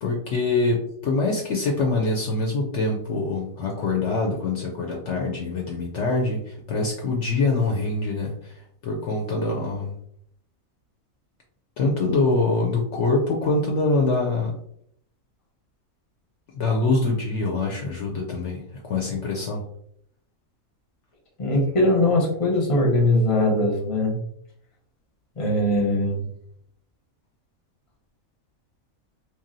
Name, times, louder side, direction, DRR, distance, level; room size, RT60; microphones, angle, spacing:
voice 1, 0.0-8.5 8.8-9.9 11.8-14.5 16.5-19.6, left 3 dB, 65° left, 0 dB, 0.8 m, -24 dB
voice 2, 21.4-24.2 25.4-26.2, left 1 dB, 30° left, -1 dB, 0.8 m, -21 dB
3.0 x 2.5 x 2.5 m, 0.68 s
omnidirectional pair, 1.4 m